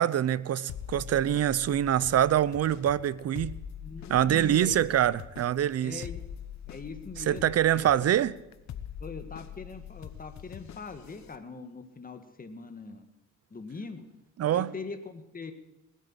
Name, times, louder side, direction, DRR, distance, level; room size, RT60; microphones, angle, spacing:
voice 1, 0.0-3.5 4.1-6.0 7.3-8.3 14.4-14.7, right 11 dB, 55° right, 0.7 m, -25 dB
sound 1, 0.7-11.4, left 9 dB, 65° left, 1.2 m, -44 dB
voice 2, 3.8-4.8 5.8-6.2 6.7-8.0 9.0-13.1 13.5-14.0 14.5-15.5, left 4 dB, 30° left, 1.9 m, -41 dB
19.5 x 8.4 x 8.9 m
cardioid pair, 90°, 30 cm